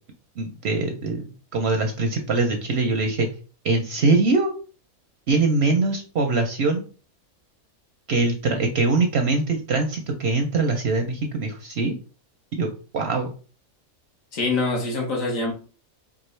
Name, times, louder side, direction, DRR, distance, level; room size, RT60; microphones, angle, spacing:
voice 1, 0.4-1.2 1.5-3.3 3.6-4.5 5.3-6.8 8.1-11.9 12.6-12.7 12.9-13.3, right 3 dB, 60° right, 0.7 m, -22 dB
voice 2, 14.3-15.5, left 3 dB, 65° left, 1.4 m, -24 dB
4.5 x 2.4 x 3.1 m
omnidirectional pair, 1.5 m